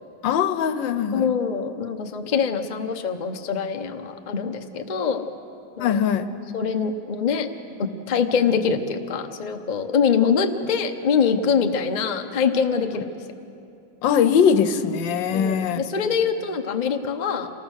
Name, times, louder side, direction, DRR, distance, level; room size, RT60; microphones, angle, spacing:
voice 1, 0.2-1.3 5.8-6.3 14.0-15.8, left 7 dB, 70° left, 11 dB, 1.4 m, -21 dB
voice 2, 1.1-5.2 5.8-6.0 6.5-7.5 7.8-13.1 15.3-17.5, left 6 dB, 45° left, 5 dB, 0.5 m, -24 dB
26.5 x 19.5 x 6.4 m, 2.7 s
omnidirectional pair, 2.2 m